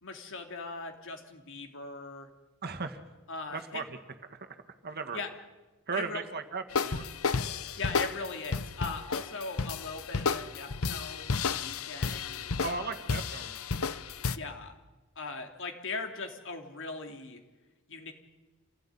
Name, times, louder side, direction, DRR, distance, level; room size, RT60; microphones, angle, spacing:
voice 1, 0.0-2.3 3.3-3.8 5.1-5.3 5.9-6.2 7.8-13.0 14.3-14.7 15.1-17.4 17.9-18.1, left 3 dB, 60° left, 4 dB, 3.3 m, -40 dB
voice 2, 2.6-3.0 3.5-3.8 4.3-4.6 4.8-5.2 5.9-7.1 12.6-13.6, right 4 dB, 45° right, 8 dB, 1.8 m, -36 dB
sound 1, 6.7-14.4, left 5 dB, 75° left, 0.9 m, -32 dB
27.0 x 16.5 x 9.9 m, 1.1 s
head